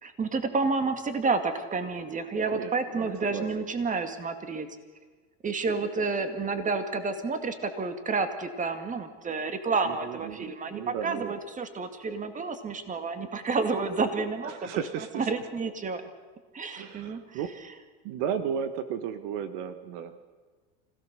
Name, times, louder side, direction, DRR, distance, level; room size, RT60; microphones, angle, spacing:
voice 1, 0.0-4.7 5.4-14.7 15.1-16.0 16.5-17.4, right 4 dB, 20° right, 8 dB, 2.1 m, -30 dB
voice 2, 2.5-3.5 9.8-11.4 14.4-15.3 16.7-17.5 18.0-20.2, right 8 dB, 65° right, 11 dB, 1.5 m, -34 dB
26.5 x 16.5 x 6.8 m, 1.4 s
supercardioid pair, 120°, 36 cm